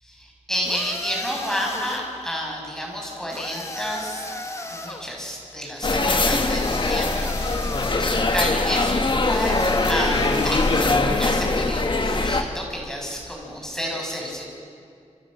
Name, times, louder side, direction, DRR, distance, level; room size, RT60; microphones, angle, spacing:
voice 1, 0.2-4.2 4.7-9.6 9.9-14.4, equal, 5° left, -1 dB, 6.6 m, -30 dB
sound 1, 0.6-2.2 3.3-5.1 6.3-8.1 9.3-11.1, left 1 dB, 25° left, 2.1 m, -35 dB
sound 2, 5.8-12.4, left 3 dB, 40° left, 1.7 m, -22 dB
28.0 x 27.5 x 6.5 m, 2.3 s
wide cardioid pair, 130°, 13 cm